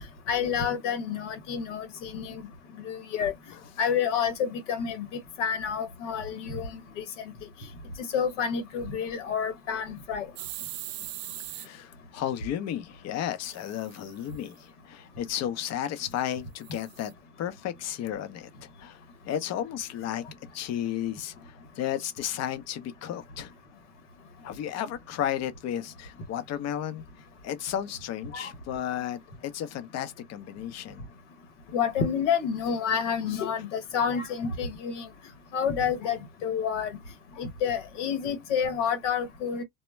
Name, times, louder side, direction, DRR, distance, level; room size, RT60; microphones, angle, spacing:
voice 1, 0.3-2.4 2.8-3.3 3.8-7.0 8.0-10.3 28.3-28.5 31.7-35.1 35.5-36.9 37.4-39.6, left 7 dB, 85° left, 1.0 m, -29 dB
sound 1, 10.3-11.7 13.5-14.5 16.6-17.1, right 15 dB, 55° right, 0.5 m, -40 dB
voice 2, 11.5-17.1 17.4-20.2 20.5-23.5 24.4-27.0 27.4-31.1, left 10 dB, 45° left, 0.7 m, -33 dB
2.1 x 2.1 x 3.1 m
hypercardioid pair, 80°, 35 cm